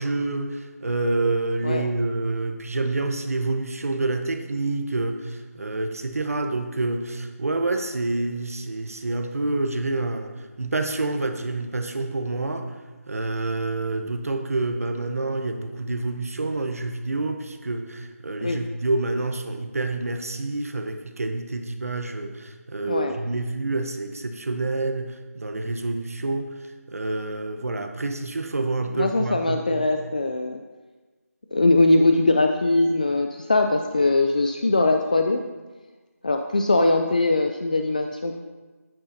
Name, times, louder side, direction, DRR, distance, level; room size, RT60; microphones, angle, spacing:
voice 1, 0.0-12.7 13.1-26.5 26.9-29.9, right 2 dB, 65° right, 6 dB, 1.0 m, -27 dB
voice 2, 28.9-30.6 31.5-35.4 36.2-38.4, left 2 dB, 30° left, 4 dB, 0.3 m, -21 dB
10.5 x 8.8 x 2.7 m, 1.3 s
figure-of-eight pair, 175°, 9 cm